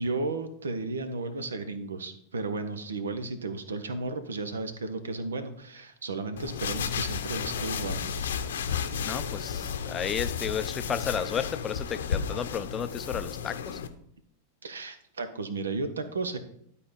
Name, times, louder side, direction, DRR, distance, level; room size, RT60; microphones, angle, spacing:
voice 1, 0.0-8.2 14.6-16.4, right 3 dB, 70° right, 10 dB, 1.0 m, -34 dB
sound 1, 6.4-13.9, left 7 dB, 60° left, 0.7 m, -33 dB
voice 2, 9.0-13.8, left 7 dB, 25° left, 11 dB, 0.5 m, -33 dB
11.5 x 4.3 x 5.2 m, 0.67 s
figure-of-eight pair, 90°, 0 cm